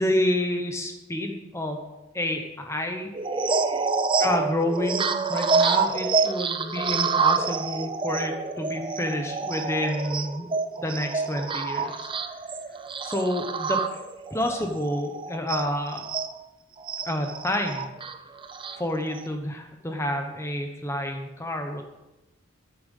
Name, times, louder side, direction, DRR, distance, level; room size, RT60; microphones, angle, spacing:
voice 1, 0.0-1.8 2.1-3.1 4.2-10.5 10.8-12.1 13.0-14.0 14.3-16.1 17.0-17.9 18.7-21.8, left 1 dB, 15° left, 4 dB, 1.0 m, -29 dB
sound 1, 3.1-16.3 16.8-19.3, right 4 dB, 25° right, 0.5 m, -27 dB
13.5 x 7.2 x 5.5 m, 0.99 s
head